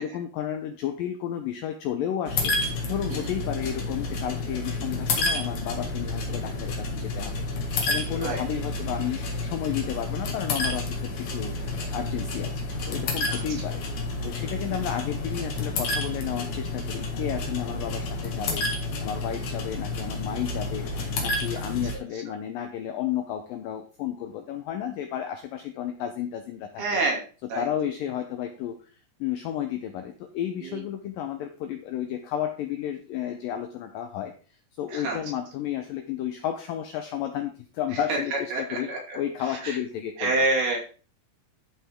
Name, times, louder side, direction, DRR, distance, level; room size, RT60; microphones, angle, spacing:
voice 1, 0.0-2.6 2.9-7.5 7.9-18.7 19.0-27.0 27.4-28.8 29.2-34.3 34.8-40.5, left 10 dB, 75° left, 7 dB, 2.2 m, -32 dB
sound 1, 2.3-21.9, left 2 dB, 55° left, 2.7 m, -30 dB
voice 2, 26.8-27.2 27.5-27.7 30.6-30.8 34.9-35.2 38.1-39.2 39.6-39.7 40.2-40.8, right 2 dB, 70° right, -2 dB, 4.7 m, -27 dB
13.0 x 5.7 x 3.7 m, 0.37 s
omnidirectional pair, 4.5 m